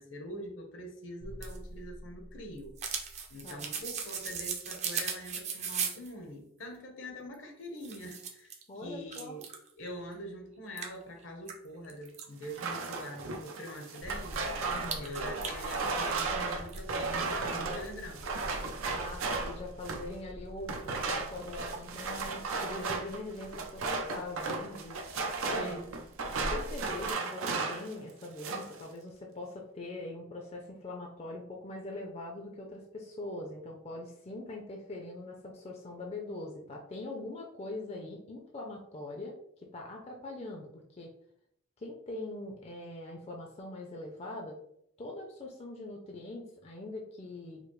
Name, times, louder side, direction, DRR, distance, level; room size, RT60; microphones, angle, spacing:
voice 1, 0.0-2.8 3.3-9.5 9.8-18.2 25.5-25.9, equal, 70° left, 3 dB, 0.8 m, -44 dB
sound 1, 1.2-6.1 7.3-7.4 7.8-8.6 9.1-9.7 10.1-10.2 10.8-12.3 14.8-16.4 16.7-16.8, right 6 dB, 35° right, 0.5 m, -38 dB
voice 2, 3.4-3.8 8.7-9.4 14.7-15.1 18.9-24.9 25.5-25.8 26.5-39.4 39.7-40.7 41.0-41.1 41.8-44.6 45.0-47.6, left 2 dB, 30° left, 0 dB, 0.4 m, -42 dB
Bag of cans, 12.4-20.1 20.6-27.9 28.2-28.8, right 4 dB, 90° right, 0.5 m, -35 dB
sound 2, 14.0-27.1, equal, 70° right, 1.2 m, -46 dB
4.8 x 2.0 x 3.0 m, 0.71 s
head